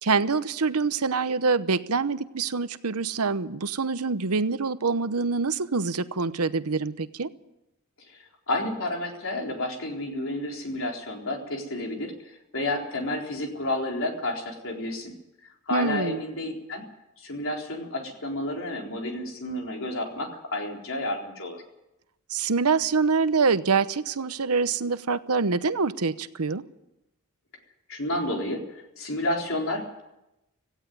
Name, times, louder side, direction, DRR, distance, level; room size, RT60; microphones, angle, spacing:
voice 1, 0.0-7.3 15.7-16.2 22.3-26.6, right 4 dB, 85° right, 13 dB, 0.9 m, -25 dB
voice 2, 8.0-15.1 15.4-16.9 17.2-21.6 27.9-30.0, left 1 dB, 65° left, 1 dB, 4.0 m, -31 dB
17.5 x 16.0 x 9.4 m, 0.92 s
head